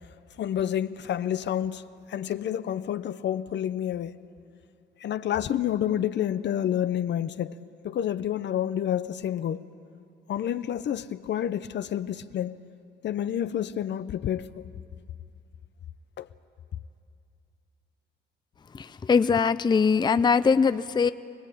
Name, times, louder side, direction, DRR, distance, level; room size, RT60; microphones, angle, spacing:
voice 1, 0.4-1.8 2.1-4.2 5.0-7.5 7.8-9.6 10.3-12.6 13.0-14.7 16.2-16.3, left 10 dB, 65° left, 0.8 m, -29 dB
voice 2, 18.8-21.1, left 5 dB, 20° left, 0.5 m, -22 dB
24.5 x 19.5 x 8.6 m
cardioid pair, 90°, 20 cm